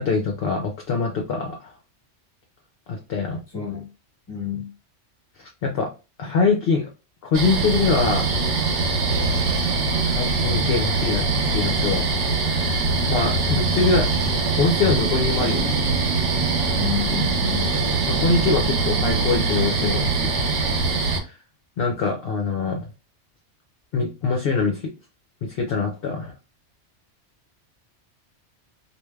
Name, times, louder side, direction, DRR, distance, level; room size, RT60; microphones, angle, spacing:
voice 1, 0.0-1.7 2.9-3.4 5.4-5.9 6.2-6.9 7.2-8.3 10.0-11.3 11.5-12.1 12.5-12.6 12.9-14.1 14.6-15.8 18.1-20.6 21.0-21.4 21.8-22.9 23.9-24.8 25.4-26.3, left 4 dB, 60° left, 0.8 m, -24 dB
voice 2, 3.5-3.9 4.3-4.7 16.7-17.7, left 8 dB, 20° left, 1.2 m, -30 dB
sound 1, 7.3-21.2, right 3 dB, 80° right, 1.1 m, -22 dB
3.2 x 2.5 x 2.3 m
omnidirectional pair, 1.2 m